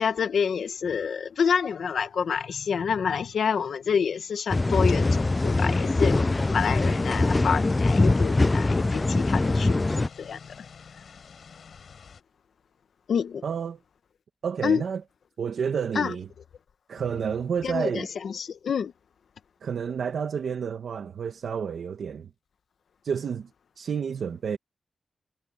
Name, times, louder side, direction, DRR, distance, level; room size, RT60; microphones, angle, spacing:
voice 1, 0.0-10.4 13.1-13.4 14.6-14.8 15.9-16.1 17.6-18.9, left 6 dB, 85° left, 1.2 m, -28 dB
sound 1, 4.5-10.1, left 2 dB, 25° left, 0.4 m, -22 dB
sound 2, 5.0-12.2, left 6 dB, 70° left, 5.4 m, -46 dB
voice 2, 13.4-13.8 14.4-15.0 15.4-16.3 16.9-18.1 19.6-22.3 23.0-23.5 23.8-24.6, right 7 dB, 85° right, 1.6 m, -30 dB
wide cardioid pair, 140°, 0 cm